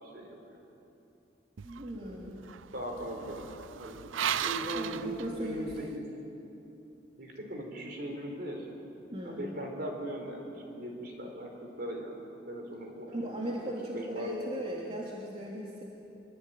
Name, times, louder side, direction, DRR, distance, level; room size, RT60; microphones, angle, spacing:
voice 1, 0.0-0.6 1.9-2.4 2.7-3.5 3.8-6.0 7.2-8.8 9.2-11.5 11.8-13.3 13.9-14.4, equal, 50° right, 2 dB, 4.6 m, -39 dB
voice 2, 1.6-2.4 4.7-6.0 9.1-9.5 13.1-15.8, equal, 30° right, -4 dB, 3.0 m, -38 dB
sound 1, 1.6-5.9, right 9 dB, 85° right, 0.5 m, -37 dB
24.5 x 23.5 x 9.3 m, 2.9 s
head